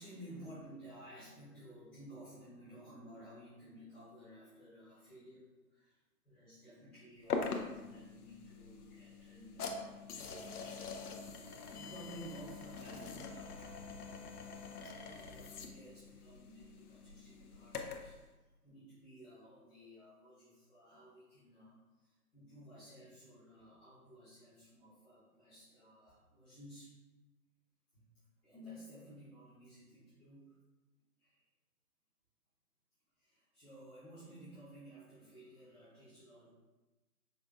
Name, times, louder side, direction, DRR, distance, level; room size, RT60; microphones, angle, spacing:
voice 1, 0.0-18.2 18.6-26.9 27.9-30.6 31.2-31.4 33.2-36.5, equal, 5° left, -20 dB, 0.8 m, -55 dB
sound 1, 7.3-18.2, left 4 dB, 75° left, 0.6 m, -44 dB
5.2 x 2.5 x 2.4 m, 1.1 s
hypercardioid pair, 155°, 46 cm